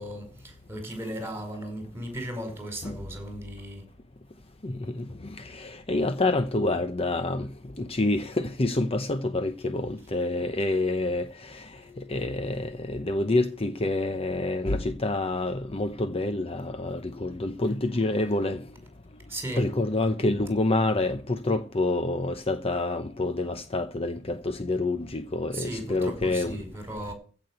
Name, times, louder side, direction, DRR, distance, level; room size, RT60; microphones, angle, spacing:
voice 1, 0.0-3.9 19.3-19.6 25.5-27.1, right 1 dB, 10° right, 5.3 m, -36 dB
voice 2, 4.6-7.5 7.8-18.7 19.6-26.6, left 2 dB, 30° left, 0.8 m, -27 dB
15.5 x 6.2 x 7.9 m
head